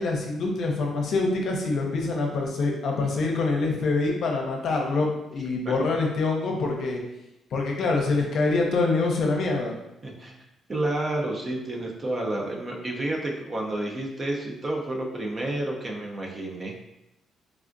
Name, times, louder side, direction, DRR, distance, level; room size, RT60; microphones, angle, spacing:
voice 1, 0.0-7.0 7.5-9.8, left 3 dB, 65° left, 0 dB, 0.6 m, -25 dB
voice 2, 10.0-10.4 10.7-16.8, right 1 dB, 35° right, 0 dB, 0.6 m, -30 dB
3.4 x 2.4 x 2.5 m, 0.87 s
cardioid pair, 90°, 0 cm